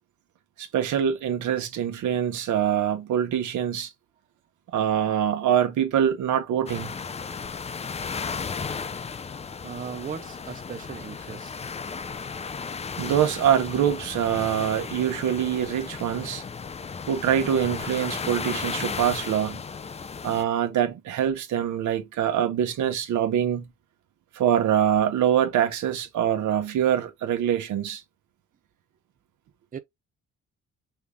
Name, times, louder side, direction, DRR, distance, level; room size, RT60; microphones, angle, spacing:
voice 1, 0.6-3.9 4.7-6.9 13.0-16.4 17.1-19.6 20.2-23.7 24.3-28.0, right 9 dB, 75° right, 1.1 m, -24 dB
sound 1, 6.7-20.4, left 5 dB, 20° left, 0.4 m, -35 dB
voice 2, 9.6-11.5 29.7-29.8, right 7 dB, 30° right, 0.5 m, -37 dB
5.7 x 2.3 x 3.5 m
cardioid pair, 90°, 30 cm